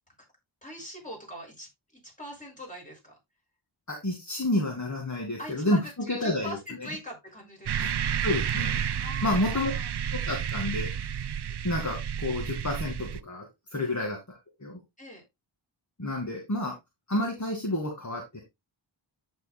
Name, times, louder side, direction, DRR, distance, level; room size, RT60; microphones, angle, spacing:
voice 1, 0.6-1.7 2.2-3.2 5.4-7.9 9.0-9.9 13.7-14.0 15.0-15.2, equal, 15° left, 6.1 m, -42 dB
voice 2, 3.9-5.8 6.1-7.0 7.8-7.9 8.2-8.8 9.2-9.7 10.1-10.9 11.6-13.5 13.7-14.8 16.0-16.7 17.1-18.4, left 1 dB, 35° left, 2.2 m, -30 dB
sound 1, 7.7-13.2, right 8 dB, 55° right, 0.6 m, -31 dB
14.0 x 4.9 x 2.2 m
wide cardioid pair, 75°, 48 cm